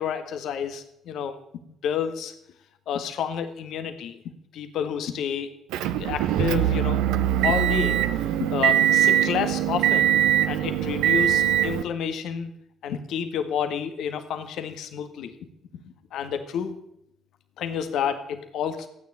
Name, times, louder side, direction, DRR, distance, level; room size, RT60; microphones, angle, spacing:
voice 1, 0.0-1.4 1.8-2.3 2.9-4.2 4.5-5.5 6.0-7.0 7.4-8.0 8.4-10.1 10.5-12.5 12.8-15.3 15.7-15.8 16.1-16.8 17.6-18.9, left 8 dB, 70° left, 8 dB, 1.7 m, -29 dB
Motor vehicle (road) / Engine, 5.7-11.8, right 11 dB, 75° right, 0.9 m, -22 dB
15.0 x 9.4 x 8.7 m, 0.80 s
hypercardioid pair, 50°, 0 cm